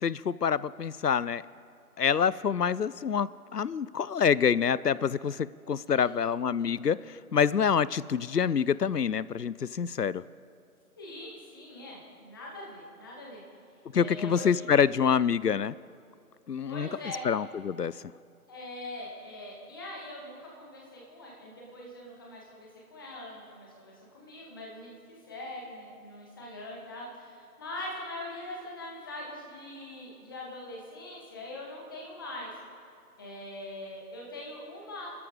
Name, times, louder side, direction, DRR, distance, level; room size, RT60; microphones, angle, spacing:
voice 1, 0.0-1.4 2.0-10.2 13.9-15.7 16.5-16.9 17.2-17.9, left 7 dB, 90° left, 20 dB, 0.6 m, -26 dB
voice 2, 11.0-13.4 13.9-14.6 16.7-17.2 18.5-24.9 25.3-32.5 33.2-35.1, left 1 dB, 15° left, -3 dB, 1.7 m, -42 dB
28.0 x 13.5 x 3.7 m, 2.4 s
figure-of-eight pair, 155°, 46 cm